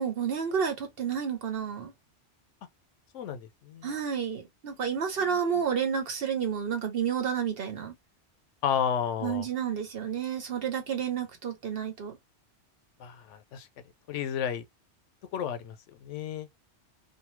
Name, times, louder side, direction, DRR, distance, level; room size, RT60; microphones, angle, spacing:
voice 1, 0.0-1.9 3.8-7.9 9.2-12.2, right 7 dB, 55° right, 1.0 m, -30 dB
voice 2, 3.1-3.9 5.2-5.6 8.6-9.5 13.0-13.7 14.1-14.7 15.3-16.5, left 8 dB, 85° left, 0.9 m, -32 dB
2.7 x 2.1 x 3.0 m
omnidirectional pair, 1.2 m